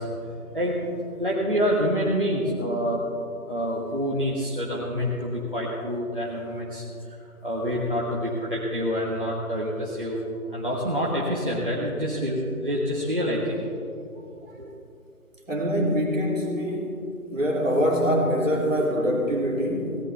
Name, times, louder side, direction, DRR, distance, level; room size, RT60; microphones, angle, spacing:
voice 1, 0.0-3.0 3.5-6.8 7.4-10.2 10.5-13.6 14.4-14.7, equal, 35° right, -6 dB, 1.4 m, -27 dB
voice 2, 15.5-16.9 17.3-20.0, equal, 60° right, -2 dB, 3.0 m, -24 dB
17.5 x 17.0 x 3.4 m, 2.7 s
figure-of-eight pair, 175°, 45 cm